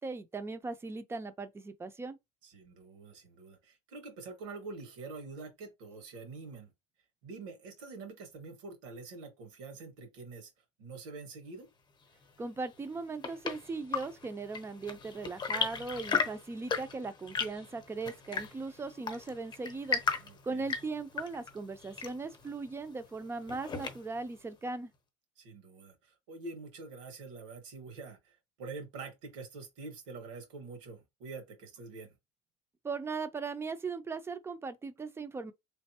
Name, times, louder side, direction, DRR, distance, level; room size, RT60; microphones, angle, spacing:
voice 1, 0.0-2.2 12.4-20.0 20.4-24.9 32.8-35.5, right 4 dB, 15° right, 0.6 m, -38 dB
voice 2, 2.4-6.7 7.2-10.5 10.8-11.7 20.2-20.7 25.4-32.2, right 3 dB, 85° right, 1.9 m, -46 dB
Chirp tweet / Engine / Tap, 12.8-24.3, left 5 dB, 30° left, 0.9 m, -37 dB
3.9 x 3.3 x 2.9 m
supercardioid pair, 115°, 16 cm